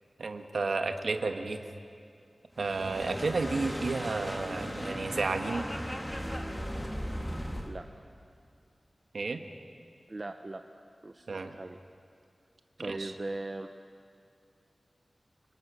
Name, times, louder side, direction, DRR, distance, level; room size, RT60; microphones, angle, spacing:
voice 1, 0.2-1.6 2.6-5.7 9.1-9.4 11.3-11.5 12.8-13.1, right 3 dB, 90° right, 6 dB, 1.3 m, -32 dB
sound 1, 2.6-7.7, equal, 10° left, 2.0 m, -37 dB
voice 2, 10.1-10.6 11.0-11.8 12.8-13.7, right 2 dB, 40° right, 6 dB, 0.8 m, -39 dB
27.0 x 19.5 x 6.3 m, 2.5 s
wide cardioid pair, 85°, 0 cm